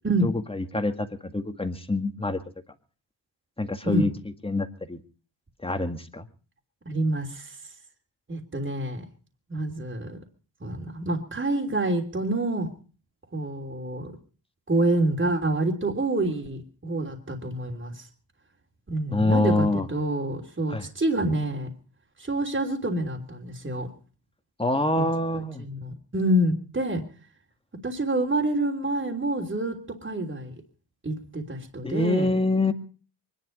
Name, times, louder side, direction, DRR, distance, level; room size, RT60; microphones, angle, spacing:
voice 1, 0.2-2.4 3.6-4.1 4.4-5.0 5.6-6.3 19.1-19.8 20.7-20.9 24.6-25.6 31.8-32.7, left 2 dB, 10° left, 7 dB, 1.9 m, -25 dB
voice 2, 6.8-7.6 8.3-9.0 9.5-10.2 10.6-12.7 13.3-14.1 14.7-18.1 18.9-21.7 22.2-23.9 25.0-25.1 25.3-27.0 27.8-30.5 31.0-32.3, right 1 dB, 25° right, 2 dB, 3.3 m, -27 dB
24.0 x 11.0 x 5.3 m, 0.39 s
wide cardioid pair, 105°, 45 cm